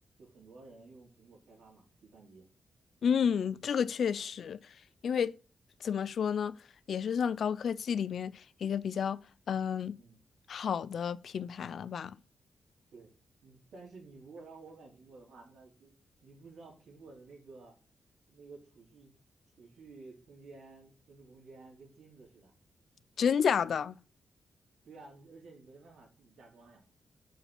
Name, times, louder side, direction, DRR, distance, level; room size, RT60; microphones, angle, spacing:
voice 1, 0.2-2.5 10.0-10.2 12.9-13.1 13.4-15.9 16.2-17.8 18.3-19.1 19.6-22.5 24.8-26.8, right 3 dB, 85° right, 3.5 m, -53 dB
voice 2, 3.0-4.6 5.0-5.3 5.8-6.5 6.9-8.3 8.6-9.2 9.5-10.0 10.5-12.2 23.2-24.0, left 7 dB, 65° left, 0.5 m, -30 dB
6.3 x 5.6 x 7.2 m
wide cardioid pair, 140°, 0 cm